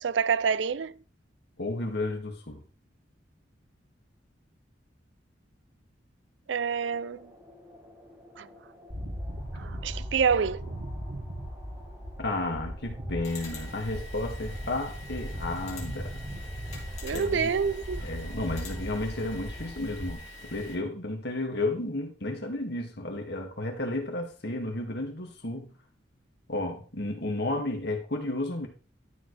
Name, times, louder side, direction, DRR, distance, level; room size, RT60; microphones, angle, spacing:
voice 1, 0.0-1.0 6.5-7.3 8.4-8.5 9.5-10.6 17.0-18.0, right 6 dB, 75° right, 0.4 m, -27 dB
voice 2, 1.6-2.6 12.2-16.2 17.1-17.5 18.0-25.7 26.5-28.7, left 2 dB, 65° left, 2.2 m, -32 dB
sound 1, 6.8-19.8, left 1 dB, 15° right, 4.3 m, -54 dB
sound 2, 8.9-20.1, equal, 90° right, 2.9 m, -38 dB
sound 3, 13.2-20.8, left 1 dB, 40° left, 3.1 m, -45 dB
12.5 x 7.2 x 3.4 m
head